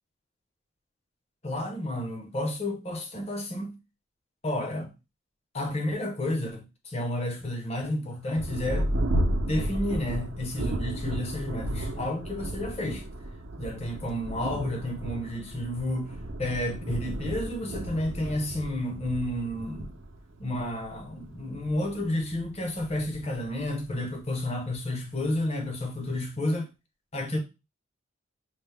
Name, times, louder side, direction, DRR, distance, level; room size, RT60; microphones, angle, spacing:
voice 1, 1.4-3.8 4.4-4.9 5.5-8.9 9.4-13.0 13.6-20.0 20.4-26.7 27.1-27.4, left 1 dB, 30° left, 0.7 m, -31 dB
Thunder, 8.3-24.4 25.2-25.3 25.8-26.2, right 1 dB, 75° right, 0.6 m, -34 dB
5.6 x 2.0 x 3.3 m
head